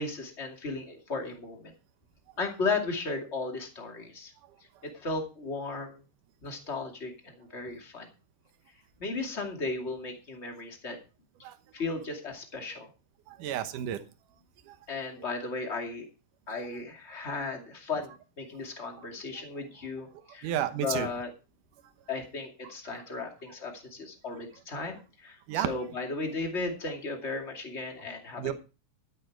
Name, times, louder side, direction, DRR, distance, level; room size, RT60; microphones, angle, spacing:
voice 1, 0.0-1.7 2.4-4.3 4.8-6.0 6.4-8.1 9.0-11.0 11.7-12.9 14.9-16.0 16.5-21.3 22.1-28.5, left 3 dB, 25° left, 3 dB, 1.6 m, -35 dB
voice 2, 13.3-14.0 14.7-14.8 20.4-21.1 22.9-23.0 25.5-25.7 28.4-28.5, right 11 dB, 70° right, 10 dB, 2.0 m, -31 dB
13.0 x 10.5 x 4.6 m, 0.32 s
omnidirectional pair, 5.0 m